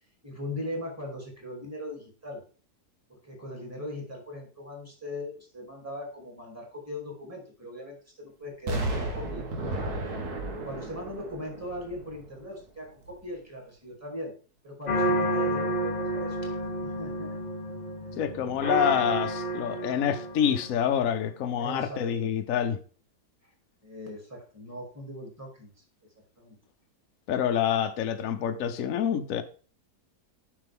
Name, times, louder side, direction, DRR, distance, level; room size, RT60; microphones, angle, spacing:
voice 1, 0.2-2.4 3.2-9.4 10.5-14.3 14.6-16.4 16.8-17.4 21.6-22.3 23.8-25.7 26.4-26.5, left 1 dB, 10° right, 2.7 m, -39 dB
Explosion, 8.7-12.6 13.1-13.2, right 2 dB, 70° right, 1.8 m, -34 dB
sound 1, 14.9-21.0, right 1 dB, 30° left, 1.2 m, -30 dB
voice 2, 18.2-22.8 27.3-29.4, left 9 dB, 60° left, 1.1 m, -27 dB
7.8 x 5.9 x 3.6 m
omnidirectional pair, 1.7 m